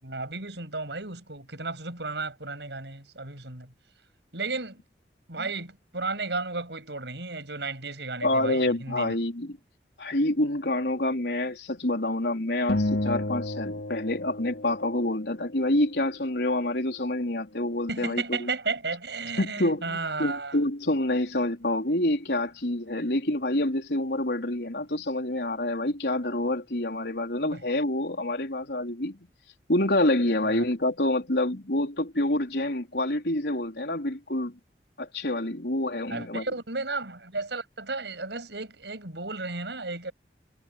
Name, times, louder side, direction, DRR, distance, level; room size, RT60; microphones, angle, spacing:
voice 1, 0.0-3.7 4.3-4.8 5.3-9.1 17.9-20.6 27.4-27.6 30.5-30.6 36.1-40.1, right 3 dB, 80° right, 6.8 m, -34 dB
voice 2, 8.2-9.6 10.0-18.5 19.4-29.2 29.7-34.6 35.0-36.5, left 1 dB, 75° left, 3.7 m, -27 dB
sound 1, 12.7-15.3, left 1 dB, 90° left, 3.3 m, -31 dB
head